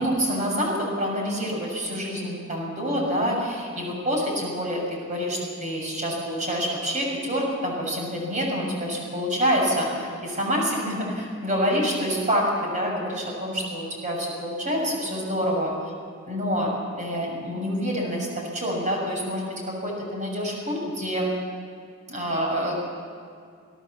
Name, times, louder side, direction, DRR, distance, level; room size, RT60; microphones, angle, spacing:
voice 1, 0.0-15.7 16.3-21.3 22.1-22.8, equal, 35° right, -1 dB, 6.5 m, -27 dB
26.5 x 17.0 x 7.3 m, 2.2 s
head